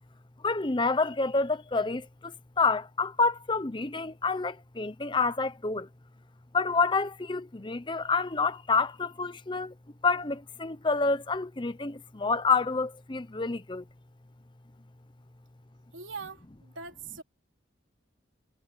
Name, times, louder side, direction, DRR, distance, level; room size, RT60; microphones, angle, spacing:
voice 1, 0.4-5.9 6.5-9.7 10.0-13.8, left 4 dB, 25° left, 0.8 m, -28 dB
voice 2, 15.9-17.2, right 4 dB, 80° right, 3.5 m, -42 dB
head